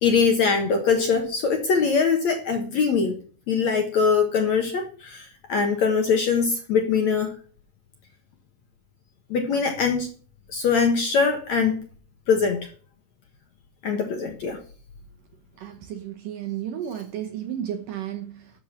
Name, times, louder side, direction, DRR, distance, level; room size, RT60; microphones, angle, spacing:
voice 1, 0.0-3.2 3.5-7.3 9.3-10.1 10.5-11.8 12.3-12.6 13.8-14.6, left 5 dB, 60° left, 2.0 m, -22 dB
voice 2, 15.6-18.5, right 10 dB, 70° right, 2.2 m, -33 dB
13.0 x 6.9 x 6.0 m
omnidirectional pair, 4.8 m